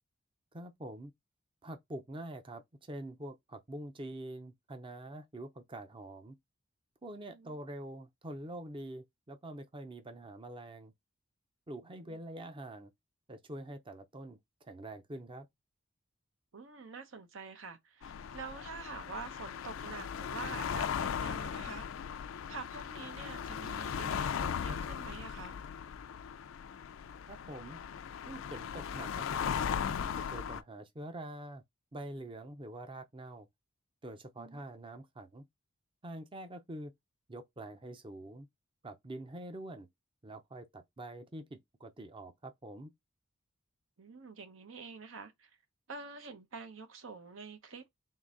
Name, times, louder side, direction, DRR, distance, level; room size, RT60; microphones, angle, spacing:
voice 1, 0.5-1.1 1.6-6.4 7.0-10.9 11.7-12.9 13.3-15.5 27.3-27.8 28.3-29.4 29.8-31.6 31.9-33.5 34.0-35.4 36.0-36.9 37.3-38.5 38.8-39.9 40.2-42.9, right 1 dB, 25° right, 0.6 m, -45 dB
voice 2, 11.8-12.2 16.5-21.9 22.5-25.6 34.4-34.6 44.0-45.6 45.9-47.9, right 4 dB, 75° right, 0.8 m, -47 dB
sound 1, 18.0-30.6, left 7 dB, 75° left, 0.4 m, -38 dB
3.8 x 2.6 x 3.8 m
head